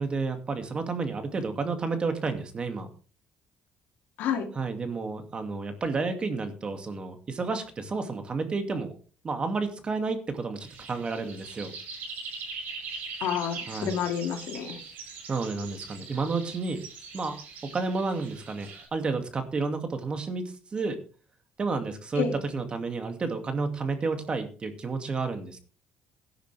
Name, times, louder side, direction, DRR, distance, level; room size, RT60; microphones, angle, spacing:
voice 1, 0.0-2.9 4.6-8.9 9.2-11.7 13.7-14.0 15.3-16.8 17.1-17.4 17.6-20.4 20.7-21.0 21.6-22.3 22.5-25.6, right 4 dB, 35° right, 6 dB, 2.3 m, -31 dB
voice 2, 4.2-4.5 13.2-14.8 22.2-22.3, left 8 dB, 75° left, 3 dB, 2.8 m, -29 dB
sound 1, 10.6-18.9, right 4 dB, 70° right, 5.7 m, -41 dB
17.0 x 10.5 x 3.4 m, 0.38 s
cardioid pair, 100°, 3 cm